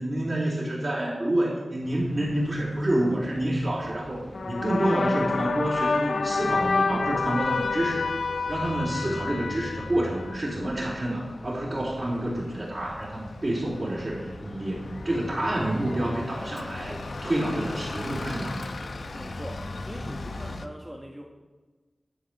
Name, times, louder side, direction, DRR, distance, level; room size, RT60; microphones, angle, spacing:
voice 1, 0.0-8.1 8.5-18.6, right 1 dB, 40° right, -6 dB, 3.5 m, -28 dB
Bus, 1.8-20.7, left 2 dB, 75° left, 0.9 m, -40 dB
sound 1, 4.3-10.7, left 4 dB, 90° left, 0.5 m, -28 dB
voice 2, 19.1-21.2, equal, 5° right, 0 dB, 1.6 m, -41 dB
12.0 x 7.9 x 6.6 m, 1.3 s
wide cardioid pair, 65°, 0 cm